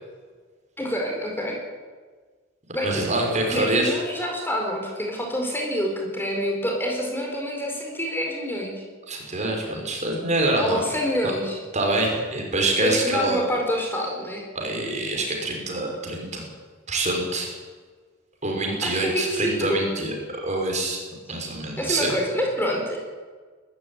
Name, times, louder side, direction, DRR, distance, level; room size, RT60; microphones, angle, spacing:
voice 1, 0.8-1.6 2.7-2.9 3.4-8.8 10.6-11.6 12.8-14.5 18.6-19.9 21.8-23.0, equal, 10° left, 1 dB, 4.4 m, -27 dB
voice 2, 2.8-4.0 9.1-10.8 11.2-11.3 11.7-13.4 14.5-16.4 16.9-17.5 18.4-20.2 20.4-21.0 21.3-22.1, right 2 dB, 35° right, 1 dB, 6.0 m, -25 dB
22.0 x 14.5 x 10.0 m, 1.5 s
head